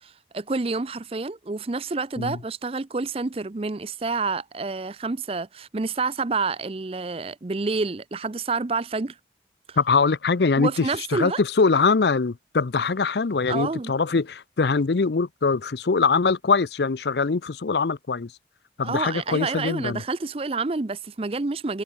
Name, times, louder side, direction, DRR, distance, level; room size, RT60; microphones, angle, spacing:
voice 1, 0.0-9.2 9.7-9.8 10.6-11.4 13.5-13.9 18.8-21.8, right 3 dB, 30° right, 0.5 m, -28 dB
voice 2, 9.8-18.3 18.8-20.0, left 4 dB, 70° left, 0.6 m, -23 dB
head